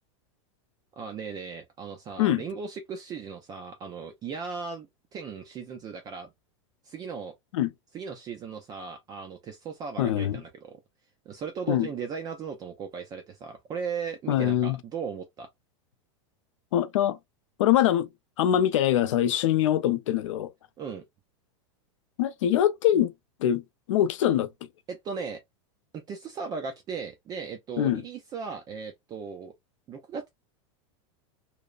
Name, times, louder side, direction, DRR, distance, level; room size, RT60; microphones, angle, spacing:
voice 1, 1.0-6.3 6.8-7.3 7.9-10.8 11.3-15.5 20.8-21.0 24.9-25.4 25.9-29.5 29.9-30.3, right 6 dB, 25° right, 0.4 m, -37 dB
voice 2, 10.0-10.4 11.7-11.9 14.3-14.8 16.7-17.2 17.6-18.1 18.4-20.5 22.2-23.1 23.4-24.5 27.8-28.0, left 11 dB, 85° left, 0.5 m, -23 dB
2.9 x 2.0 x 2.3 m
supercardioid pair, 145°, 16 cm